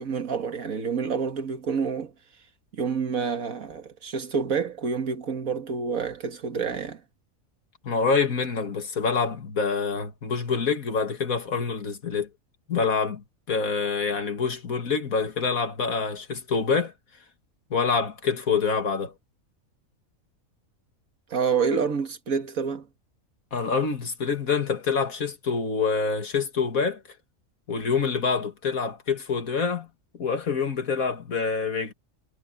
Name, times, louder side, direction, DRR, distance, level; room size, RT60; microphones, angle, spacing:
voice 1, 0.0-2.1 2.7-7.0 21.3-22.9, right 6 dB, 80° right, 2.1 m, -28 dB
voice 2, 7.8-12.3 12.7-16.9 17.7-19.1 23.5-27.0 27.7-29.9 30.1-31.9, left 5 dB, 85° left, 2.4 m, -26 dB
omnidirectional pair, 1.4 m